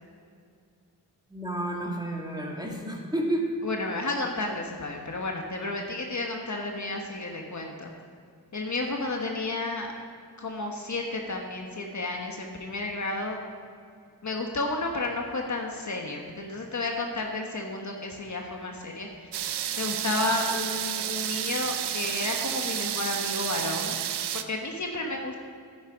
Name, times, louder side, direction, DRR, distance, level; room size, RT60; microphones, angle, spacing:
voice 1, 1.3-3.6, right 1 dB, 10° right, -1 dB, 2.2 m, -30 dB
voice 2, 3.6-7.9 8.5-9.9 10.4-13.4 14.2-19.3 19.8-24.0 24.3-25.4, left 2 dB, 45° left, 1 dB, 1.4 m, -32 dB
sound 1, 19.3-24.4, right 10 dB, 90° right, 0.6 m, -31 dB
10.5 x 9.0 x 5.1 m, 2.3 s
cardioid pair, 60°, 39 cm